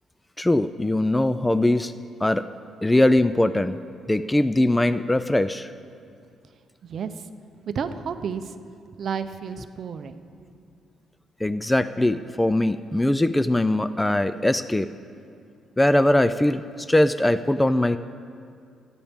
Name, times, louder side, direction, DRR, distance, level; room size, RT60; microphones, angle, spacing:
voice 1, 0.4-1.9 2.2-2.4 2.8-3.8 4.1-5.7 11.4-14.9 15.8-16.6 16.9-18.0, left 1 dB, 10° left, 13 dB, 0.3 m, -21 dB
voice 2, 6.8-7.3 7.6-8.5 9.0-10.2, right 6 dB, 55° right, 10 dB, 0.6 m, -31 dB
20.0 x 10.0 x 3.6 m, 2.4 s
cardioid pair, 90°, 0 cm